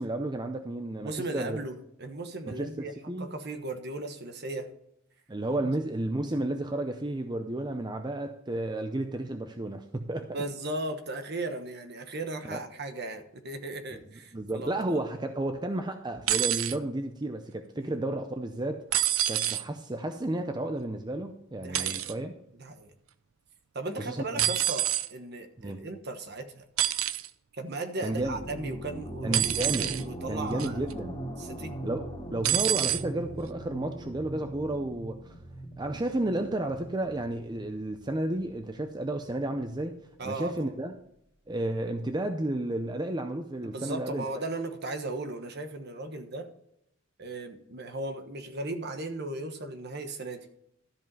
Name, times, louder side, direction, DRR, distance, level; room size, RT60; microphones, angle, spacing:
voice 1, 0.0-1.6 2.5-3.3 5.3-10.4 12.4-12.6 14.3-18.8 19.3-22.3 24.0-24.4 25.6-25.8 28.0-28.4 29.2-29.9 30.3-31.2 31.8-35.3 35.8-40.9 41.5-44.2, right 1 dB, 20° right, 6 dB, 0.6 m, -32 dB
voice 2, 1.0-2.9 3.2-4.7 5.5-5.7 10.3-15.0 17.7-18.0 21.6-22.1 22.6-22.9 23.7-26.6 27.6-30.9 31.4-31.7 40.2-40.7 43.6-46.5 47.2-50.5, right 2 dB, 50° right, 7 dB, 1.2 m, -37 dB
sound 1, 16.3-16.8 18.9-19.6 21.7-22.1 24.4-25.1 26.8-27.3 29.3-30.0 30.6-30.9 32.4-33.0 34.0-34.1, right 12 dB, 90° right, 0.5 m, -27 dB
sound 2, 28.1-39.6, right 1 dB, 20° left, 2.7 m, -40 dB
13.0 x 5.4 x 5.4 m, 0.78 s
head